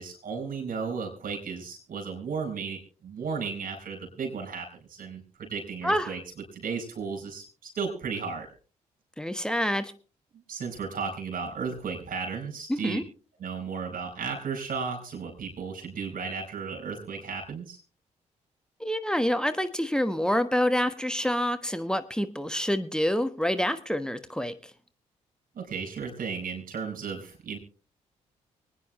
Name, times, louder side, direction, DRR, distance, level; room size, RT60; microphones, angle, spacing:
voice 1, 0.0-6.2 6.5-8.5 10.5-13.0 13.4-17.8 25.5-27.6, right 5 dB, 55° right, 4 dB, 4.6 m, -34 dB
voice 2, 9.2-9.9 12.7-13.0 18.8-24.5, equal, 5° left, 10 dB, 1.3 m, -27 dB
24.5 x 9.7 x 3.1 m, 0.37 s
hypercardioid pair, 40°, 17 cm